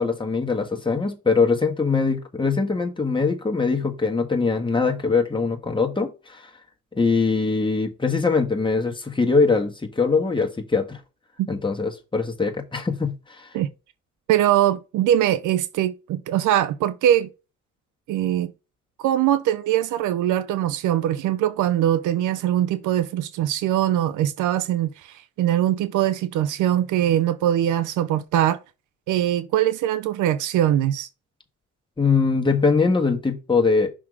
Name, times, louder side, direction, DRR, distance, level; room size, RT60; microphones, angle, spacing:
voice 1, 0.0-6.4 6.9-11.0 11.5-13.5 32.0-33.9, left 4 dB, 15° left, 1.6 m, -22 dB
voice 2, 14.3-17.3 18.1-18.5 19.0-28.6 29.1-31.1, right 12 dB, 80° right, 0.6 m, -22 dB
5.9 x 3.7 x 4.9 m
cardioid pair, 90°, 30 cm